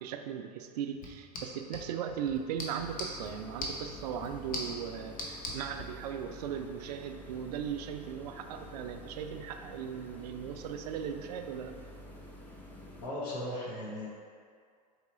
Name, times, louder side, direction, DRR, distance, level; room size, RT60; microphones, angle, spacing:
voice 1, 0.0-11.7, right 8 dB, 70° right, 7 dB, 0.4 m, -38 dB
sound 1, 0.9-5.9, left 1 dB, 40° left, 0.9 m, -42 dB
sound 2, 2.8-13.1, equal, 10° left, 0.5 m, -49 dB
voice 2, 13.0-14.1, left 1 dB, 70° left, -6 dB, 1.4 m, -37 dB
4.6 x 3.2 x 3.1 m, 2.1 s
hypercardioid pair, 95°, 21 cm